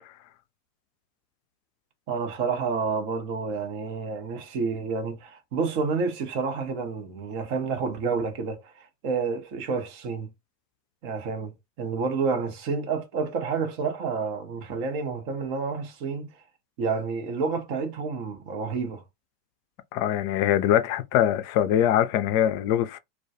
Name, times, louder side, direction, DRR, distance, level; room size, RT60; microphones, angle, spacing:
voice 1, 2.1-10.3 11.0-11.5 11.8-16.3 16.8-19.0, right 5 dB, 55° right, 0.7 m, -29 dB
voice 2, 19.9-23.0, left 11 dB, 55° left, 0.3 m, -23 dB
2.2 x 2.2 x 2.7 m
hypercardioid pair, 90°, 0 cm